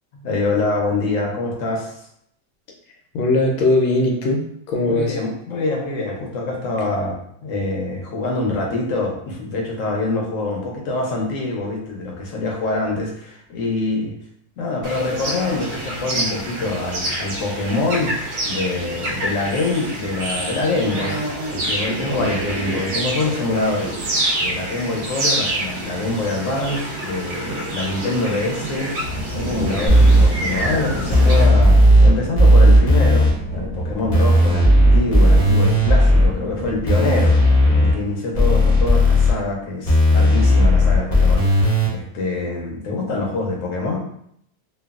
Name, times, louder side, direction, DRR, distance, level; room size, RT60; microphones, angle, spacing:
voice 1, 0.1-2.0 4.8-14.1 14.6-18.1 18.4-29.1 29.3-31.8 32.0-44.0, left 2 dB, 60° left, -1 dB, 0.8 m, -25 dB
voice 2, 3.1-5.2, left 2 dB, 80° left, 0 dB, 1.2 m, -19 dB
sound 1, 14.8-31.5, right 1 dB, 65° right, 1.1 m, -27 dB
sound 2, 29.0-37.9, left 1 dB, 20° right, 0.6 m, -30 dB
sound 3, 29.9-30.3 31.1-32.1 32.4-33.3 34.1-36.3 36.9-37.9 38.4-39.3 39.9-41.9, equal, 40° left, 0.5 m, -13 dB
3.0 x 2.2 x 2.3 m, 0.70 s
omnidirectional pair, 1.9 m